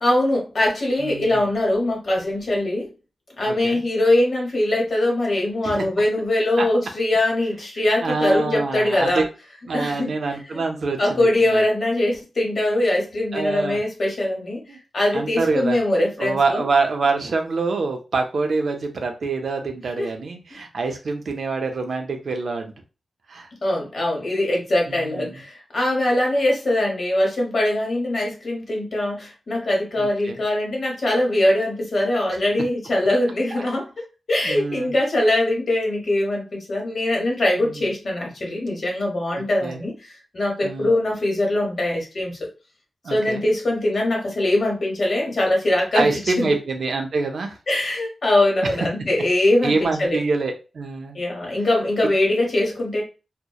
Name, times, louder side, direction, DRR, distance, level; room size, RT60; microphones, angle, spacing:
voice 1, 0.0-2.9 3.4-9.2 9.7-10.1 10.5-10.6 11.0-14.6 14.9-16.7 20.0-20.1 23.6-33.9 34.3-42.5 43.1-46.5 47.7-50.2 51.1-53.0, left 1 dB, 50° left, -1 dB, 0.9 m, -22 dB
voice 2, 1.0-1.5 3.4-3.8 5.6-5.9 6.6-6.7 8.0-9.3 9.7-11.6 13.3-13.8 14.7-14.8 15.1-15.8 16.2-22.7 23.3-23.5 24.9-25.4 30.0-30.4 33.5-33.6 34.4-34.9 37.6-37.9 39.3-39.8 40.6-40.9 43.0-43.5 45.9-47.6 48.6-48.7 49.6-51.2, right 3 dB, 60° right, 4 dB, 0.4 m, -25 dB
2.7 x 2.0 x 2.3 m, 0.31 s
wide cardioid pair, 160°, 0 cm